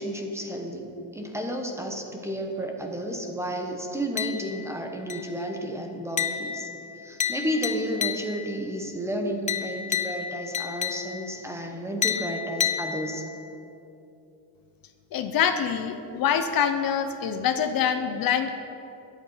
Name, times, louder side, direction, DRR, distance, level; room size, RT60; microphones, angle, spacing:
voice 1, 0.0-6.7 7.0-13.2, equal, 5° right, 2 dB, 1.1 m, -32 dB
sound 1, 4.2-4.7 5.1-5.5 6.2-8.6 9.5-11.4 12.0-13.4, left 7 dB, 20° left, 0.3 m, -31 dB
voice 2, 15.1-18.5, left 8 dB, 50° left, 8 dB, 0.8 m, -25 dB
21.5 x 8.2 x 5.6 m, 2.8 s
cardioid pair, 175°, 45 cm